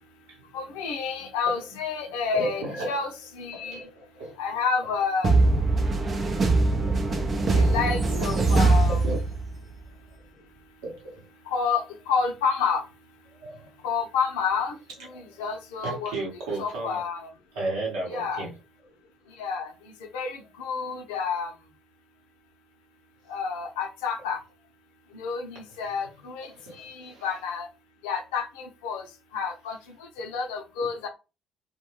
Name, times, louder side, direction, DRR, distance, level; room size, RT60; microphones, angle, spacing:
voice 1, 0.5-3.8 4.4-5.3 7.5-9.0 11.5-12.8 13.8-14.8 15.1-16.2 16.6-17.3 18.1-18.4 19.4-19.7 20.1-21.5 23.3-24.4 25.1-26.5 26.8-27.7 28.0-29.0 29.3-29.8 30.2-31.1, left 5 dB, 80° left, 0.5 m, -29 dB
voice 2, 2.3-3.0 3.5-4.4 8.4-8.5 8.9-9.2 10.8-11.3 13.3-13.7 15.1-15.4 15.8-17.0 17.5-18.5 26.4-27.3 30.8-30.9, right 2 dB, 75° right, 1.0 m, -34 dB
sound 1, 5.2-9.7, right 3 dB, 40° right, 0.6 m, -22 dB
2.2 x 2.2 x 3.0 m
hypercardioid pair, 55°, 0 cm